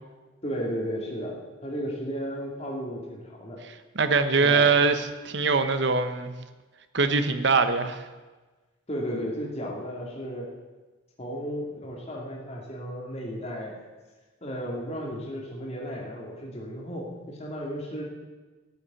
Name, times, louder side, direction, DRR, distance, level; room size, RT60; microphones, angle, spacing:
voice 1, 0.4-3.6 4.4-4.8 8.9-10.5 11.2-13.8 14.4-18.0, equal, 30° left, -2 dB, 2.5 m, -34 dB
voice 2, 3.9-6.3 6.9-8.0, right 4 dB, 60° right, 10 dB, 1.0 m, -22 dB
13.0 x 7.0 x 9.0 m, 1.3 s
head